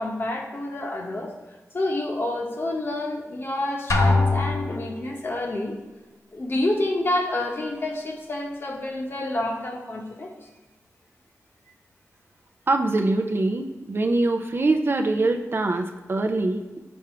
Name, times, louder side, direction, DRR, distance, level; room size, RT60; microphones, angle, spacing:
voice 1, 0.0-1.4 1.7-5.8 6.3-10.3, left 1 dB, 45° left, 0 dB, 1.1 m, -28 dB
Drum, 3.9-5.1, left 3 dB, 80° left, 0.7 m, -22 dB
voice 2, 12.7-16.8, right 2 dB, 45° right, 5 dB, 0.5 m, -23 dB
6.1 x 3.6 x 5.7 m, 1.2 s
wide cardioid pair, 100°, 5 cm